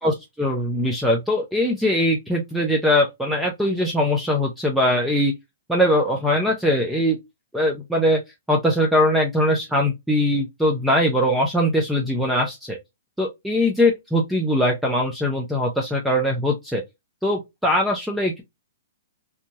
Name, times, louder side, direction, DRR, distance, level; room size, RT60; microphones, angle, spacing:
voice 1, 0.0-5.3 5.7-7.2 7.5-8.2 8.5-12.8 13.2-16.8 17.2-18.4, left 1 dB, ahead, 0.4 m, -21 dB
2.6 x 2.2 x 2.8 m
hypercardioid pair, 165°, 0 cm